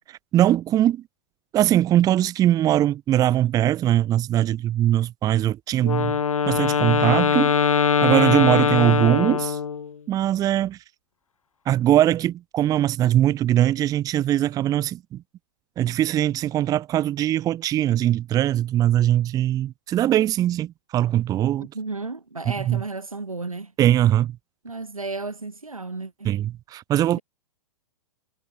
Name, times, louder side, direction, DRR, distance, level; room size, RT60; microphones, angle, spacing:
voice 1, 0.3-1.0 1.5-6.2 6.5-7.5 8.0-9.6 10.1-10.8 11.7-15.2 15.8-21.7 22.6-22.8 23.8-24.4 26.2-27.2, right 12 dB, 20° right, 1.0 m, -21 dB
Wind instrument woodwind instrument, 5.8-9.9, left 6 dB, 75° left, 0.7 m, -21 dB
voice 2, 21.6-23.7 24.6-26.3, right 3 dB, 80° right, 3.8 m, -33 dB
figure-of-eight pair, 110°, 18 cm